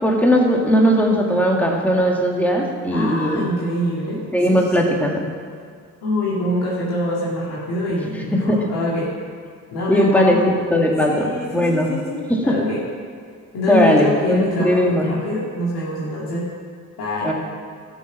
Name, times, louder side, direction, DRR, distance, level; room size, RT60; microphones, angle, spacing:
voice 1, 0.0-3.4 4.3-5.2 8.5-8.6 9.9-11.3 11.5-11.9 12.3-12.4 13.7-15.1 17.2-17.3, equal, 5° left, -1 dB, 2.1 m, -18 dB
voice 2, 2.9-4.2 4.5-4.6 6.0-9.1 9.7-10.4 11.1-12.8 13.5-16.5 17.0-17.3, left 1 dB, 60° left, -6 dB, 2.4 m, -25 dB
12.5 x 6.3 x 6.0 m, 2.2 s
hypercardioid pair, 50°, 42 cm